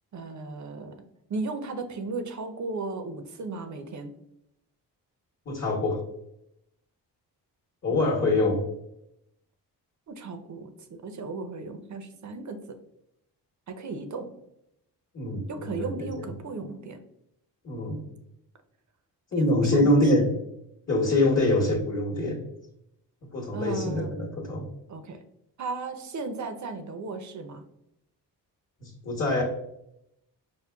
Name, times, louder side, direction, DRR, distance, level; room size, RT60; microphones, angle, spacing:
voice 1, 0.1-1.0 1.3-4.1 7.9-8.5 10.1-12.8 13.7-14.3 15.5-17.0 19.4-19.9 23.5-24.1 24.9-25.2 25.6-27.6, right 3 dB, 45° right, 7 dB, 0.6 m, -35 dB
voice 2, 5.5-6.0 7.8-8.6 15.1-16.3 17.6-18.0 19.3-20.3 20.9-22.5 23.2-24.7 28.8-29.4, left 1 dB, 35° left, -1 dB, 1.0 m, -25 dB
5.3 x 2.1 x 2.2 m, 0.80 s
supercardioid pair, 55°, 42 cm